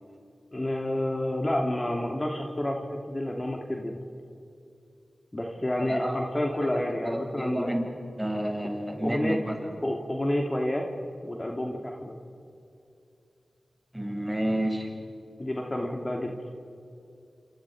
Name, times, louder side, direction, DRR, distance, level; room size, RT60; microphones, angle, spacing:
voice 1, 0.5-3.9 5.3-7.7 9.0-9.4 9.8-10.9 11.2-12.1 15.4-16.3, left 1 dB, 30° left, 1 dB, 3.1 m, -29 dB
voice 2, 6.7-7.8 8.2-9.7 13.9-14.9, right 1 dB, 10° right, 1 dB, 7.4 m, -30 dB
29.0 x 28.5 x 5.1 m, 2.6 s
cardioid pair, 40°, 0 cm